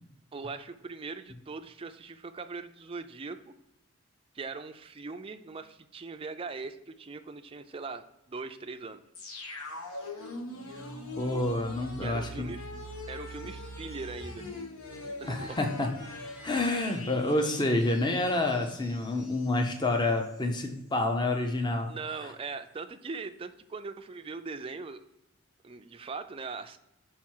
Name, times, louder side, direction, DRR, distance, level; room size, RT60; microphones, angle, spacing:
voice 1, 0.3-3.5 4.3-9.0 12.0-12.7 13.1-14.5 15.2-15.6 21.9-25.0 25.6-26.8, right 4 dB, 25° right, 8 dB, 0.3 m, -40 dB
sound 1, 9.2-20.0 20.3-20.4, left 1 dB, 85° left, 1.0 m, -42 dB
voice 2, 11.2-12.5 15.3-15.9 16.4-22.3, left 2 dB, 20° left, 4 dB, 0.6 m, -28 dB
5.8 x 4.7 x 4.5 m, 0.89 s
head